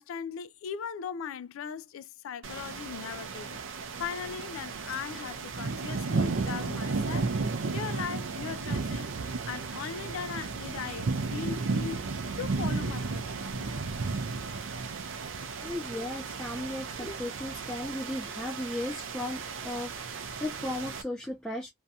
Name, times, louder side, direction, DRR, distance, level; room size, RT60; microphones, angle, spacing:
voice 1, 0.0-3.6 4.0-7.4 7.7-9.1 9.5-12.0 12.4-13.8, left 7 dB, 80° left, 0.3 m, -39 dB
sound 1, 2.4-21.0, right 4 dB, 70° right, 0.5 m, -34 dB
voice 2, 15.6-21.7, left 1 dB, 5° left, 0.4 m, -36 dB
2.6 x 2.3 x 2.6 m
head